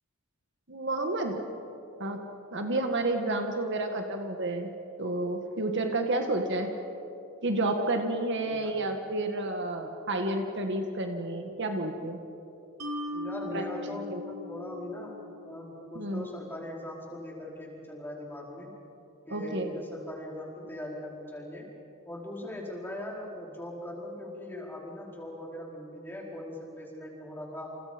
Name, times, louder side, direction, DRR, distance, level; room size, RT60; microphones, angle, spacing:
voice 1, 0.7-1.4 2.0-2.2 2.5-4.7 5.0-6.7 7.4-12.2 13.5-13.6 14.1-14.2 16.0-16.3 19.3-19.7, right 2 dB, 55° right, 4 dB, 1.9 m, -30 dB
Mallet percussion, 12.8-16.1, left 2 dB, 75° right, 4.9 m, -39 dB
voice 2, 13.1-15.2 15.4-18.7 19.3-21.6 22.0-27.7, left 1 dB, 10° left, -3 dB, 4.6 m, -40 dB
30.0 x 28.5 x 5.3 m, 2.8 s
head